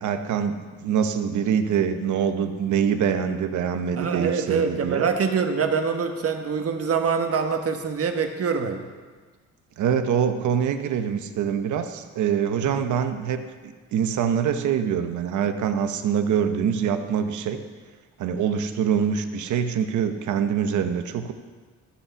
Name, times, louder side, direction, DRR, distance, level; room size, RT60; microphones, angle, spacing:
voice 1, 0.0-5.1 9.8-17.6 18.2-21.3, right 7 dB, 75° right, 8 dB, 1.0 m, -24 dB
voice 2, 4.0-8.8 12.6-12.8, right 6 dB, 50° right, 5 dB, 1.3 m, -25 dB
14.5 x 5.7 x 7.0 m, 1.4 s
cardioid pair, 90°, 30 cm